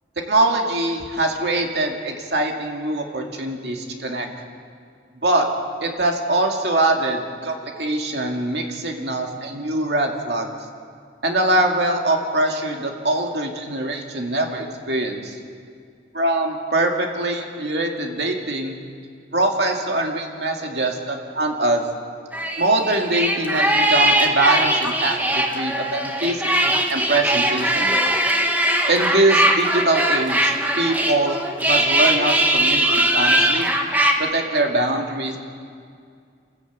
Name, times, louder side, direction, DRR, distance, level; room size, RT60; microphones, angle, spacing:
voice 1, 0.3-4.3 5.2-5.5 5.8-10.5 11.2-15.4 16.1-18.8 19.3-21.8 22.6-27.9 28.9-33.7 34.2-35.4, right 2 dB, 60° right, 2 dB, 2.4 m, -23 dB
sound 1, 22.3-34.1, right 1 dB, 10° right, 1.3 m, -20 dB
28.0 x 13.5 x 8.3 m, 2.2 s
head